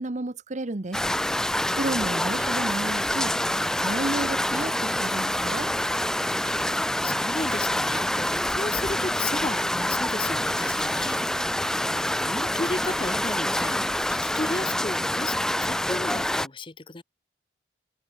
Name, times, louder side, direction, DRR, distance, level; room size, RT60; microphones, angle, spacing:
voice 1, 0.0-1.5 1.7-5.7, right 2 dB, 45° right, 0.9 m, -32 dB
sound 1, 0.9-16.5, left 1 dB, 5° left, 0.3 m, -26 dB
sound 2, 4.3-4.7 5.3-5.7 6.3-6.7 7.3-7.7 8.3-8.7 9.3-9.7 10.3-11.2, right 6 dB, 25° right, 1.5 m, -48 dB
voice 2, 6.4-11.5 11.8-14.0 14.2-17.0, left 2 dB, 30° left, 1.1 m, -34 dB
head